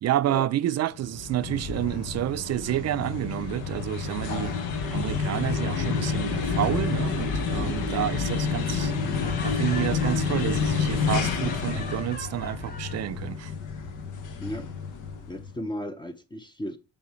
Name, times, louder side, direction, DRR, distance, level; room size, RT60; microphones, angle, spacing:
voice 1, 0.0-4.6 4.9-8.9 9.4-13.5, right 13 dB, 60° right, 0.5 m, -29 dB
sound 1, 1.0-15.5, left 5 dB, 80° left, 1.1 m, -29 dB
Laughter, 9.0-13.1, left 3 dB, 30° left, 1.1 m, -42 dB
voice 2, 15.3-16.8, equal, 15° left, 0.6 m, -35 dB
7.0 x 5.3 x 3.0 m
cardioid pair, 90°, 30 cm